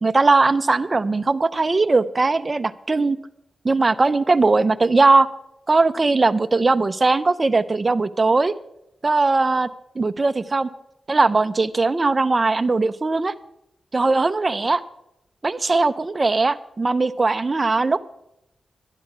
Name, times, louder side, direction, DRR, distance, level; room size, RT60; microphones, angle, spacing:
voice 1, 0.0-3.2 3.6-5.3 5.7-8.5 9.0-9.7 10.0-10.7 11.1-13.3 13.9-14.8 15.4-18.1, right 3 dB, 25° right, 10 dB, 0.6 m, -19 dB
11.5 x 11.5 x 6.0 m, 0.83 s
wide cardioid pair, 165°, 0 cm